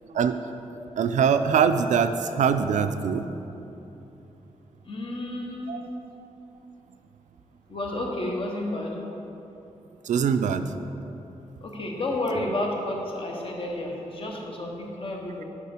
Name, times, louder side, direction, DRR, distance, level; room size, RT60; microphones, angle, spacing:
voice 1, 1.0-3.3 5.7-5.8 10.0-10.6, right 7 dB, 85° right, 9 dB, 0.4 m, -23 dB
voice 2, 4.9-5.9 7.7-9.0 11.6-15.4, left 1 dB, 45° left, -1 dB, 1.1 m, -31 dB
8.2 x 4.9 x 4.3 m, 3.0 s
wide cardioid pair, 125°, 12 cm